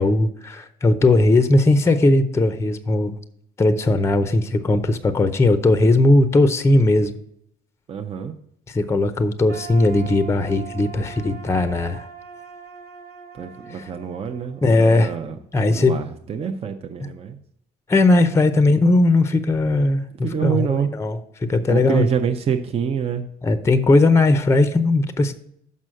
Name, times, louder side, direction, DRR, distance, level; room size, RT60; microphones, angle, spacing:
voice 1, 0.0-3.1 3.6-7.1 8.7-12.1 13.7-13.9 14.6-15.1 15.5-15.9 17.9-22.1 23.4-25.3, left 2 dB, 15° left, 11 dB, 0.6 m, -18 dB
voice 2, 7.9-8.3 13.3-15.4 15.6-17.4 20.2-20.9 21.7-23.3, right 7 dB, 35° right, 5 dB, 0.6 m, -26 dB
sound 1, 9.5-15.4, right 7 dB, 80° right, 1.8 m, -41 dB
6.1 x 5.5 x 6.3 m, 0.72 s
cardioid pair, 110°, 17 cm